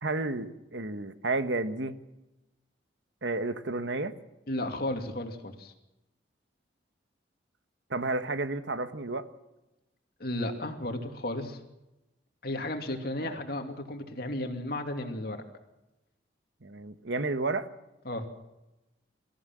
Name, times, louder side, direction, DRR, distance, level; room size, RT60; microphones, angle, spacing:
voice 1, 0.0-1.9 3.2-4.1 7.9-9.3 13.2-13.4 16.6-17.7, right 2 dB, 75° right, 10 dB, 1.4 m, -31 dB
voice 2, 4.5-5.7 10.2-11.6 12.4-15.4 18.0-18.2, left 1 dB, 55° left, 5 dB, 2.6 m, -34 dB
24.5 x 14.5 x 7.6 m, 0.97 s
head